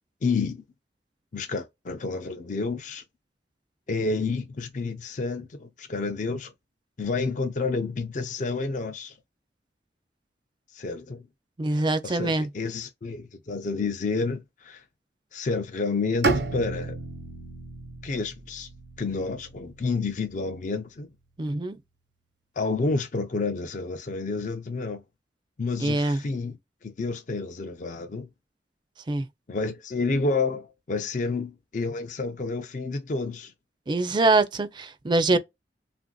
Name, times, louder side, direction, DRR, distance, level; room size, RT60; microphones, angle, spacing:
voice 1, 0.2-0.6 1.3-3.0 3.9-6.5 7.0-9.1 10.7-11.3 11.7-14.8 15.3-17.0 18.0-18.7 19.0-21.1 22.6-25.0 25.6-26.6 26.8-28.3 29.5-33.5 35.3-35.4, left 3 dB, 45° left, 0.5 m, -30 dB
voice 2, 11.6-12.5 21.4-21.8 25.8-26.2 29.1-29.3 33.9-35.4, right 2 dB, 25° right, 0.4 m, -24 dB
Bowed string instrument, 16.2-20.2, right 3 dB, 75° right, 0.8 m, -32 dB
3.2 x 2.5 x 2.2 m
head